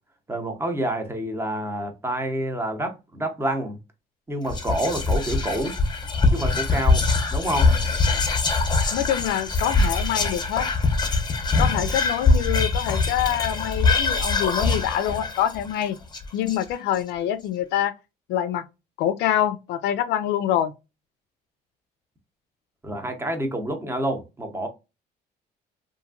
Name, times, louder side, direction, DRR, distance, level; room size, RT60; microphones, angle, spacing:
voice 1, 0.3-3.8 4.3-5.8 6.3-7.0 7.3-7.7 22.8-24.7, right 1 dB, 15° right, 0.7 m, -28 dB
Whispering, 4.5-17.0, left 3 dB, 25° left, 0.6 m, -23 dB
voice 2, 8.9-10.7 11.6-16.0 16.3-17.9 18.3-18.7 19.0-20.7, left 11 dB, 80° left, 0.4 m, -25 dB
2.9 x 2.6 x 2.4 m
cardioid pair, 110°, 17 cm